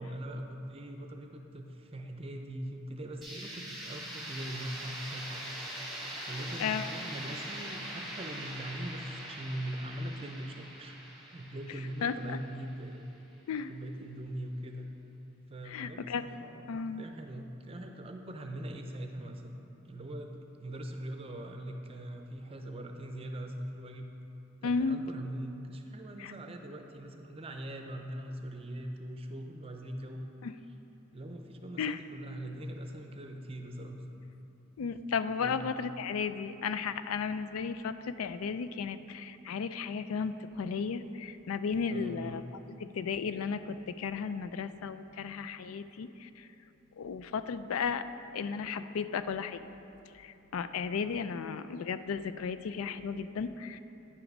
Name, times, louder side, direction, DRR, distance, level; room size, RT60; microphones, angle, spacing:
voice 1, 0.0-5.4 6.2-11.0 11.3-13.1 13.5-14.9 15.5-16.7 17.0-19.5 19.8-24.1 24.6-30.3 31.1-34.0 35.4-35.6 41.9-42.4, right 1 dB, 30° right, 4 dB, 0.6 m, -41 dB
sound 1, 3.2-13.0, right 1 dB, ahead, 1.4 m, -42 dB
voice 2, 12.0-12.4 13.5-13.7 15.7-16.3 16.7-17.0 24.6-25.1 26.2-26.3 30.4-30.5 31.8-32.0 34.8-42.4 42.8-46.5 47.0-48.0 48.3-49.6 50.1-53.8, left 5 dB, 85° left, 12 dB, 0.4 m, -34 dB
9.8 x 5.8 x 5.3 m, 2.9 s
head